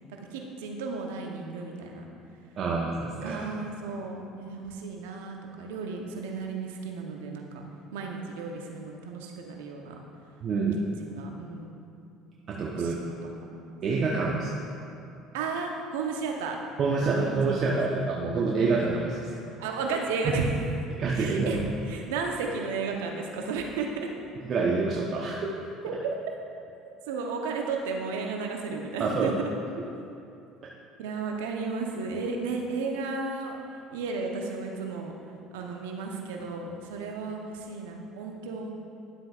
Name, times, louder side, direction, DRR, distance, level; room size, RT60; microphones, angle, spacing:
voice 1, 0.3-2.0 3.2-7.6 7.9-10.0 11.0-11.7 12.7-13.8 14.1-14.5 15.3-16.6 17.0-17.8 19.6-20.6 21.1-24.1 25.8-26.2 27.1-29.5 31.0-33.5 33.9-35.1 35.5-38.7, right 4 dB, 80° right, 2 dB, 0.9 m, -34 dB
voice 2, 2.6-3.4 10.4-10.8 12.5-13.0 13.8-14.5 16.8-19.3 20.2-20.3 21.0-21.6 24.4-25.5 29.0-29.3, right 4 dB, 50° right, -3 dB, 0.9 m, -27 dB
11.0 x 7.6 x 2.4 m, 2.6 s
hypercardioid pair, 70°, 0 cm